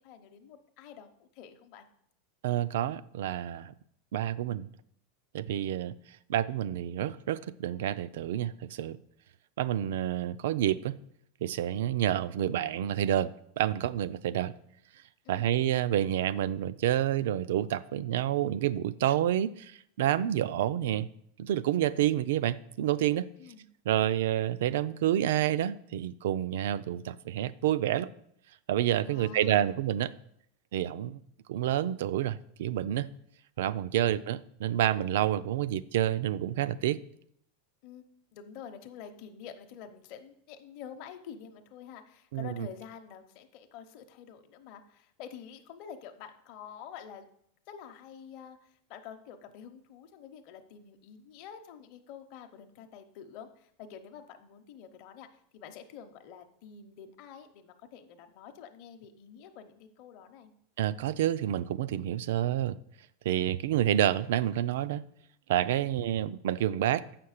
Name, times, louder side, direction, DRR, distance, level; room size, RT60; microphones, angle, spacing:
voice 1, 0.0-1.9 5.5-5.9 15.2-15.6 23.4-23.7 29.0-29.8 37.8-47.3 47.7-60.5 65.8-66.0, left 8 dB, 45° left, 5 dB, 0.7 m, -48 dB
voice 2, 2.4-3.7 4.1-4.7 5.3-5.9 6.3-9.0 9.6-11.0 11.4-14.5 15.3-21.1 21.4-23.3 23.9-28.1 28.7-30.1 30.7-31.2 31.5-33.1 33.6-37.0 42.3-42.7 60.8-62.8 63.2-65.0 65.5-67.0, right 12 dB, 75° right, 16 dB, 0.4 m, -29 dB
7.6 x 5.9 x 6.5 m, 0.70 s
supercardioid pair, 165°, 0 cm